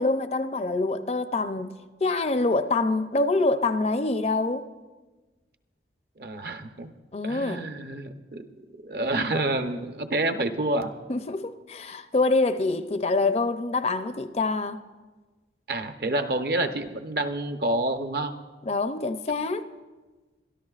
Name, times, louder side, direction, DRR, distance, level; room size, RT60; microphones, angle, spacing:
voice 1, 0.0-1.8 2.0-4.6 7.1-7.7 11.1-14.8 18.7-19.7, left 3 dB, 35° left, 0.5 m, -25 dB
voice 2, 6.2-6.9 7.2-8.5 8.8-10.9 15.7-18.3, right 2 dB, 55° right, 0.8 m, -28 dB
24.5 x 13.0 x 2.4 m
head